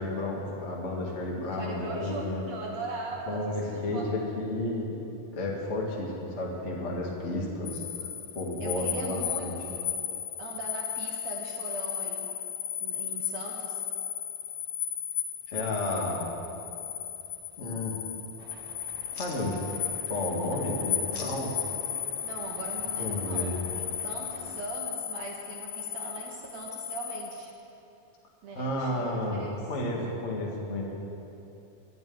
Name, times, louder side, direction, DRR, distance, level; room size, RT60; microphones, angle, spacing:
voice 1, 0.0-2.4 3.3-5.0 5.3-7.8 8.3-9.5 15.5-16.3 17.6-18.0 19.2-19.6 20.1-21.5 23.0-23.6 28.5-29.4 29.7-30.8, left 1 dB, 35° left, -2 dB, 1.2 m, -32 dB
voice 2, 1.4-4.1 8.6-9.9 10.4-12.3 12.8-13.8 22.2-27.5 28.4-29.7, right 3 dB, 65° right, -1 dB, 1.8 m, -40 dB
sound 1, 7.7-27.5, left 9 dB, 75° left, 2.3 m, -35 dB
sound 2, 16.8-24.2, left 4 dB, 50° left, 2.0 m, -52 dB
sound 3, 18.4-24.6, right 4 dB, 85° right, 3.2 m, -49 dB
12.0 x 9.3 x 9.3 m, 2.8 s
omnidirectional pair, 4.3 m